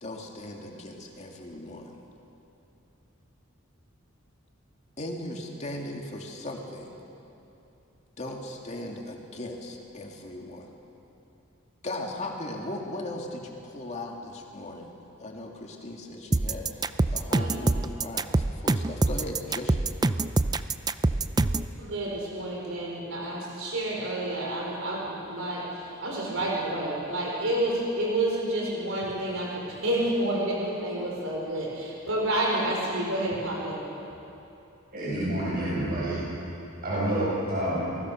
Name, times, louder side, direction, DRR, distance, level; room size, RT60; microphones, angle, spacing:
voice 1, 0.0-2.0 5.0-7.0 8.2-10.7 11.8-14.9 15.2-19.8, left 1 dB, 35° left, 0 dB, 2.6 m, -38 dB
sound 1, 16.3-21.7, right 2 dB, 20° right, 0.5 m, -24 dB
voice 2, 21.8-33.8, right 1 dB, 75° right, -2 dB, 4.5 m, -29 dB
voice 3, 34.9-36.2 36.8-37.8, right 1 dB, 45° right, -9 dB, 7.5 m, -28 dB
27.5 x 19.5 x 6.5 m, 2.9 s
head